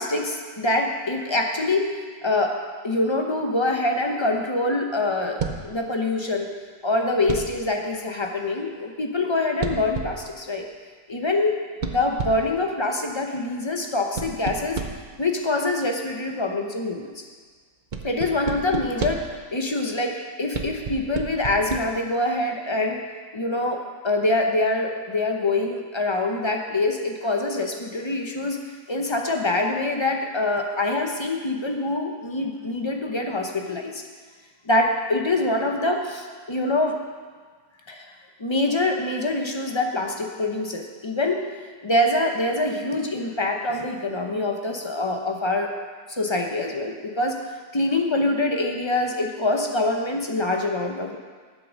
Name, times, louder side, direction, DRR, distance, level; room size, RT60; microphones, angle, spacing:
voice 1, 0.0-1.8 2.2-2.5 2.8-6.5 6.8-10.6 11.1-11.6 11.8-14.8 15.2-17.2 18.0-19.2 19.5-23.0 23.3-28.6 28.9-34.0 34.7-37.0 37.9-38.1 38.4-41.4 41.8-45.7 46.1-47.4 47.7-51.2, left 2 dB, 25° left, 2 dB, 0.6 m, -25 dB
sound 1, 5.4-5.8 7.3-7.7 9.6-10.3 11.8-12.6 14.2-15.2 17.9-19.4 20.5-21.8, right 5 dB, 50° right, 0.6 m, -31 dB
8.6 x 8.4 x 6.4 m, 1.5 s
omnidirectional pair, 1.7 m